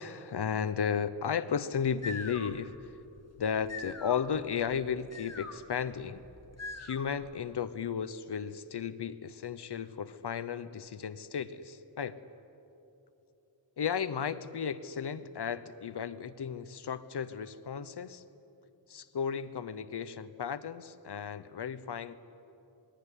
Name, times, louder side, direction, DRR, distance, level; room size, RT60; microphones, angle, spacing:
voice 1, 0.0-2.9 3.4-6.2 6.8-12.2 13.8-18.2 18.9-22.1, left 7 dB, 65° left, 13 dB, 1.0 m, -34 dB
sound 1, 1.7-7.3, left 3 dB, 35° left, 1.9 m, -45 dB
27.0 x 21.5 x 10.0 m, 2.9 s
wide cardioid pair, 145°, 43 cm